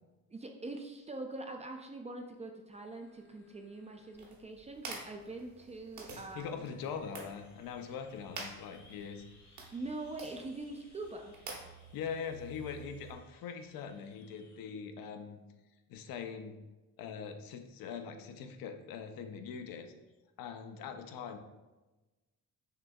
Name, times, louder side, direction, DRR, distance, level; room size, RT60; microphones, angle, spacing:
voice 1, 0.3-6.7 9.7-11.3, right 2 dB, 20° right, 3 dB, 0.3 m, -43 dB
sound 1, 2.7-14.7, left 3 dB, 50° left, 1.1 m, -66 dB
sound 2, 4.1-13.1, right 3 dB, 55° right, 1.1 m, -50 dB
voice 2, 6.3-9.2 11.9-15.4 15.9-16.6 17.0-19.9 20.4-21.4, left 6 dB, 70° left, 7 dB, 0.6 m, -42 dB
6.6 x 2.6 x 2.2 m, 1.1 s
cardioid pair, 100°, 36 cm